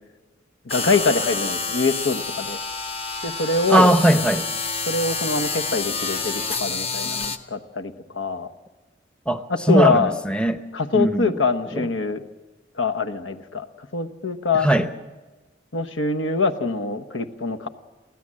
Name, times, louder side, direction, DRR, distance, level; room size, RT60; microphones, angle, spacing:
voice 1, 0.6-2.6 3.2-3.9 4.9-8.5 9.5-10.1 10.7-12.2 12.8-14.7 15.7-17.7, left 3 dB, 85° left, 6 dB, 1.1 m, -24 dB
sound 1, 0.7-7.4, left 4 dB, 30° left, 0.9 m, -28 dB
voice 2, 3.7-4.4 9.3-10.6 10.9-11.3 11.7-11.9 14.5-14.9, right 1 dB, 5° left, 9 dB, 0.7 m, -19 dB
23.5 x 15.5 x 7.6 m, 1.2 s
head